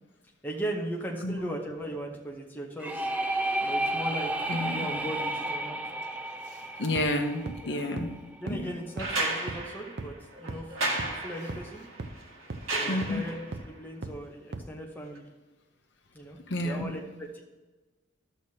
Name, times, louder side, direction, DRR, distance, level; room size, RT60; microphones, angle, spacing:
voice 1, 0.4-3.1 3.6-5.8 7.6-7.8 8.4-10.6 10.9-11.8 12.8-15.3 16.1-16.4 16.6-17.4, right 1 dB, 10° left, -1 dB, 0.8 m, -38 dB
sound 1, 2.8-8.4, right 1 dB, 10° right, 0.3 m, -32 dB
voice 2, 6.8-8.2 8.5-8.7 12.9-13.2 16.5-16.9, left 1 dB, 60° left, 4 dB, 0.8 m, -30 dB
sound 2, 7.0-7.1 7.5-7.6 8.0-8.1 8.5-8.6 9.0-9.1 9.5-9.6 10.0-10.1 10.5-10.6 11.0-11.1 11.5-11.6 12.0-12.1 12.5-12.6 13.0-13.1 13.5-13.6 14.0-14.1 14.5-14.6, right 3 dB, 55° right, 0.6 m, -36 dB
sound 3, 9.0-13.6 15.2-15.3, right 2 dB, 90° right, 1.5 m, -34 dB
12.5 x 6.4 x 2.8 m, 1.2 s
head